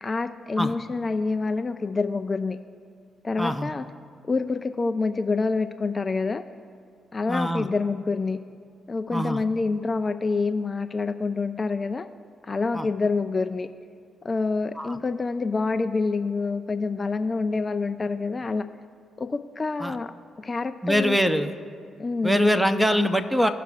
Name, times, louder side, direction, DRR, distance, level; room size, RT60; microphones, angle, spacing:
voice 1, 0.0-2.6 3.2-3.8 4.3-6.4 7.1-8.4 8.9-12.1 12.4-13.7 14.2-18.7 19.2-21.2 22.0-22.4, left 4 dB, 35° left, 9 dB, 0.4 m, -27 dB
voice 2, 3.4-3.7 7.3-7.7 9.1-9.4 12.7-12.9 14.8-15.0 19.8-20.0 20.8-21.5 22.2-23.5, equal, 5° right, 9 dB, 0.8 m, -23 dB
17.0 x 5.8 x 2.4 m, 2.2 s
hypercardioid pair, 40°, 0 cm